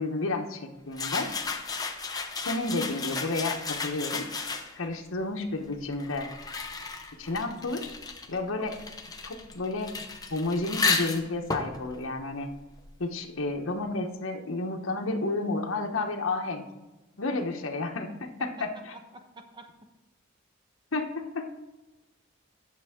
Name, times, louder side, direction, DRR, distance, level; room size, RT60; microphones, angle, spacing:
voice 1, 0.0-1.3 2.4-4.3 4.7-6.3 7.2-7.9 8.3-8.8 9.2-9.9 10.3-12.5 13.0-16.7 17.2-18.9 20.9-21.5, left 2 dB, 80° left, 3 dB, 1.0 m, -31 dB
sound 1, 0.9-4.9 5.7-13.1, left 4 dB, 20° left, 0.7 m, -34 dB
voice 2, 18.9-19.9, right 2 dB, 20° right, 5 dB, 0.9 m, -49 dB
11.0 x 6.7 x 3.6 m, 1.1 s
head